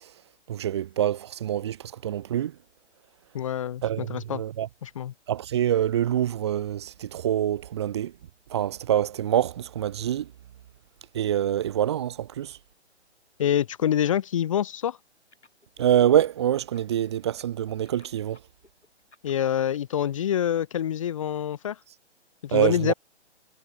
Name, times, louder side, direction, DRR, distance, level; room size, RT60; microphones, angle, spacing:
voice 1, 0.5-1.8 2.0-2.5 3.8-4.7 5.3-8.1 8.5-10.3 11.1-12.5 15.8-18.4 22.5-22.9, right 11 dB, 25° right, 0.5 m, -25 dB
voice 2, 3.3-4.4 4.8-5.1 13.4-15.0 19.2-21.8 22.4-22.9, left 10 dB, 30° left, 0.5 m, -26 dB
sound 1, 15.3-16.3 16.6-19.9, left 2 dB, 90° left, 6.9 m, -57 dB
figure-of-eight pair, 135°, 34 cm